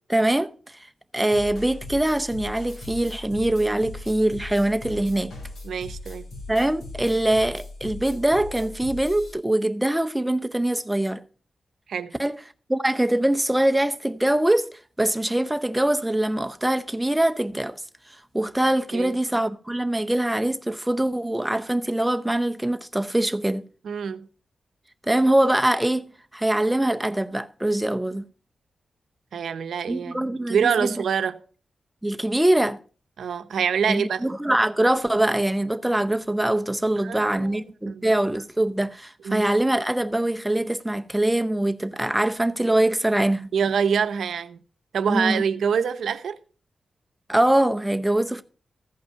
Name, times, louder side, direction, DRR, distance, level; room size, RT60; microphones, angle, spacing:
voice 1, 0.1-0.8 1.1-5.3 6.5-11.2 12.2-12.4 12.7-14.7 15.0-17.8 18.3-23.6 25.0-28.2 29.9-30.9 32.0-32.8 33.8-43.5 45.1-45.4 47.3-48.4, right 1 dB, 5° right, 0.6 m, -23 dB
sound 1, 1.3-9.3, left 2 dB, 90° left, 5.8 m, -39 dB
voice 2, 5.6-6.3 11.9-12.1 18.9-19.1 23.8-24.3 29.3-31.4 33.2-34.2 37.0-37.6 37.9-38.1 39.2-39.5 43.5-44.6 44.9-46.4, right 7 dB, 85° right, 0.7 m, -25 dB
14.5 x 5.5 x 5.6 m
wide cardioid pair, 130°, 0 cm